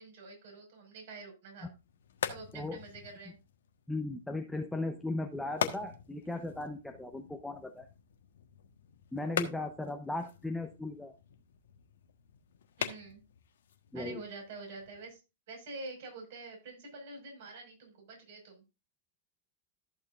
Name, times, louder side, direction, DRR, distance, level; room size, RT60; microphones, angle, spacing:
voice 1, 0.0-1.7 2.3-3.4 12.8-13.2 13.9-15.2 15.5-18.6, right 3 dB, 55° right, 1 dB, 5.5 m, -46 dB
sound 1, 1.6-15.1, left 9 dB, 65° left, 1.3 m, -43 dB
voice 2, 3.9-7.9 9.1-11.1 13.9-14.2, left 2 dB, 5° left, 4 dB, 0.9 m, -37 dB
14.5 x 6.6 x 2.5 m, 0.28 s
figure-of-eight pair, 110°, 0 cm